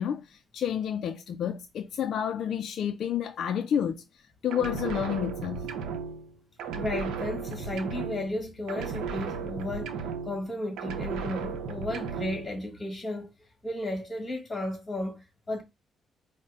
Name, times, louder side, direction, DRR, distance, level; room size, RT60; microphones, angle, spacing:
voice 1, 0.0-5.7, left 9 dB, 65° left, 0.3 m, -30 dB
sound 1, 4.5-6.3 6.6-8.4 8.7-10.5 10.8-12.5, right 5 dB, 85° right, 0.7 m, -35 dB
voice 2, 6.8-10.0 10.2-13.3 13.6-15.6, left 1 dB, 20° left, 1.8 m, -34 dB
5.2 x 2.1 x 3.7 m
cardioid pair, 90°, 0 cm